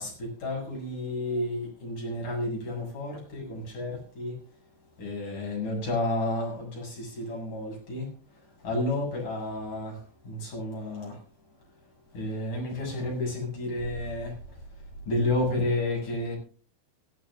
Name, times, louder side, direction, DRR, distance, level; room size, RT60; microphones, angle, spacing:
voice 1, 0.0-4.4 5.0-11.2 12.1-14.6 15.1-16.4, left 2 dB, 50° left, 8.8 m, -31 dB
18.0 x 17.5 x 2.6 m
omnidirectional pair, 4.9 m